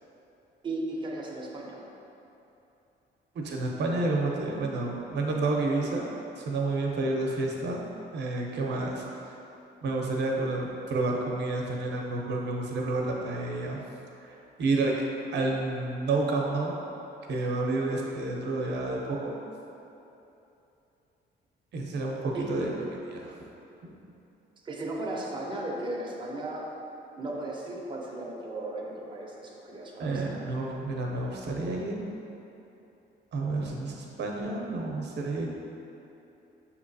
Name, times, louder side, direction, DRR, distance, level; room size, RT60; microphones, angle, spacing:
voice 1, 0.6-1.8 8.7-9.0 22.3-22.5 24.6-26.7 27.2-30.5, right 2 dB, 25° right, -2 dB, 0.6 m, -36 dB
voice 2, 3.3-6.1 6.4-7.8 8.1-9.3 9.8-13.8 14.2-14.9 15.3-16.7 17.3-19.3 21.7-23.3 30.0-32.0 33.3-35.5, right 2 dB, 60° right, -1 dB, 0.7 m, -30 dB
6.3 x 2.9 x 2.6 m, 2.9 s
cardioid pair, 90°, 20 cm